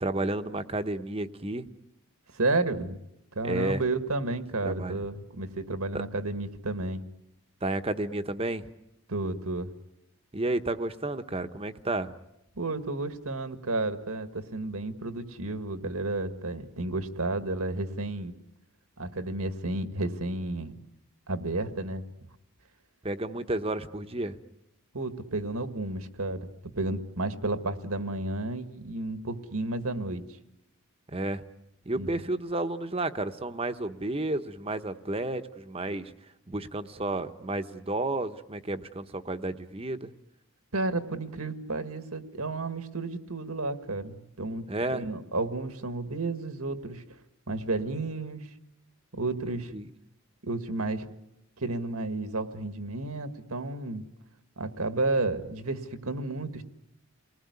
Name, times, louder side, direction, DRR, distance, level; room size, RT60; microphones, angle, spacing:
voice 1, 0.0-1.7 3.4-3.8 4.6-5.0 5.9-6.0 7.6-8.7 10.3-12.1 23.0-24.3 31.1-31.4 31.9-36.1 36.5-40.1 44.7-45.0 49.7-49.9, right 2 dB, 25° right, 9 dB, 0.9 m, -31 dB
voice 2, 2.3-3.0 3.3-7.0 9.1-9.7 12.6-18.3 19.0-20.7 21.3-22.0 24.9-26.5 26.8-30.2 31.9-32.1 40.7-47.0 47.5-48.5 49.2-49.7 50.4-51.1 51.6-54.1 54.6-56.6, right 2 dB, 85° right, 9 dB, 1.7 m, -32 dB
28.5 x 20.0 x 9.6 m, 0.84 s
head